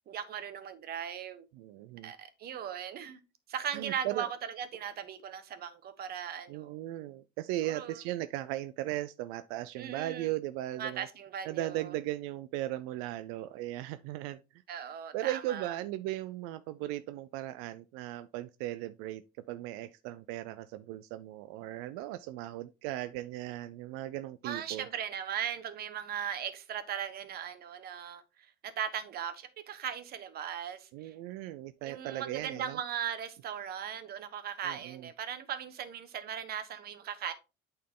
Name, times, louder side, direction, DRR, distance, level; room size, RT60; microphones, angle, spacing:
voice 1, 0.1-1.4 2.0-3.2 3.5-6.7 7.6-8.0 9.8-10.3 10.8-11.9 14.7-15.8 24.4-31.1 31.8-37.3, right 9 dB, 50° right, 1.2 m, -38 dB
voice 2, 1.5-2.1 3.7-4.3 6.5-11.1 11.5-14.6 15.1-19.2 19.5-24.9 30.9-32.8 34.6-35.1, right 15 dB, 90° right, 0.5 m, -37 dB
8.4 x 4.5 x 3.7 m
cardioid pair, 135°, 21 cm